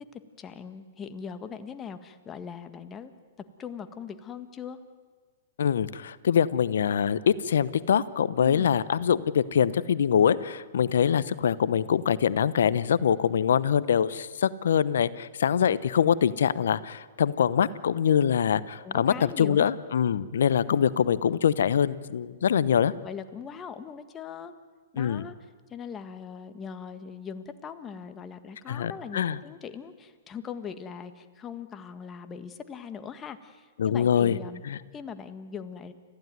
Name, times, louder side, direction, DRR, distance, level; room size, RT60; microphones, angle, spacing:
voice 1, 0.1-3.1 3.6-4.8 8.4-8.7 18.8-19.6 23.0-24.5 24.9-34.6 34.9-35.9, left 7 dB, 20° left, 9 dB, 1.7 m, -40 dB
voice 2, 5.6-22.9 25.0-25.2 28.7-29.4 33.8-34.4 34.6-34.8, left 8 dB, 70° left, 18 dB, 0.9 m, -24 dB
29.5 x 15.0 x 9.5 m, 1.5 s
hypercardioid pair, 120°, 0 cm